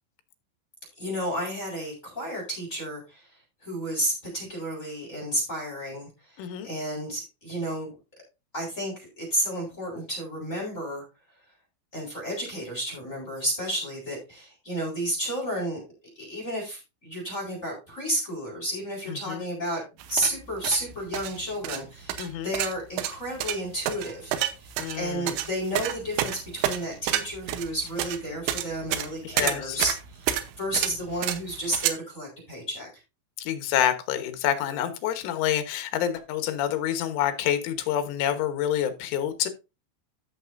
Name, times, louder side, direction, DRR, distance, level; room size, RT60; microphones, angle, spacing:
voice 1, 1.0-7.9 8.5-11.0 11.9-15.8 16.2-19.8 20.1-32.9, right 1 dB, 15° left, -2 dB, 4.0 m, -32 dB
voice 2, 6.4-6.7 19.3-19.4 22.2-22.5 24.8-25.3 29.3-29.8 33.4-39.5, left 10 dB, 80° left, 8 dB, 3.6 m, -27 dB
sound 1, 20.0-31.9, right 12 dB, 85° right, 3.3 m, -29 dB
14.0 x 6.6 x 2.6 m, 0.27 s
omnidirectional pair, 5.6 m